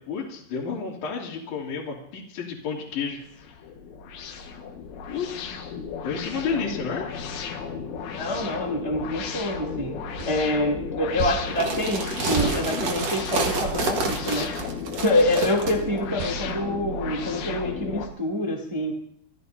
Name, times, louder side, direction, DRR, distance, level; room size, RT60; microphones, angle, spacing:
voice 1, 0.1-3.2 5.1-5.7 6.0-7.1, left 5 dB, 45° left, -4 dB, 3.6 m, -31 dB
sound 1, 2.9-18.1, left 5 dB, 80° left, 4.1 m, -34 dB
voice 2, 8.1-9.9 10.2-14.5 14.9-18.9, left 1 dB, 30° right, -1 dB, 0.5 m, -26 dB
sound 2, 10.2-10.3 11.2-11.5 12.4-12.6 13.6-13.9 14.6-14.8 16.2-16.4, right 7 dB, 75° right, 3.4 m, -31 dB
sound 3, 11.5-15.7, right 4 dB, 55° right, 1.9 m, -28 dB
27.5 x 15.0 x 2.7 m, 0.74 s
omnidirectional pair, 5.5 m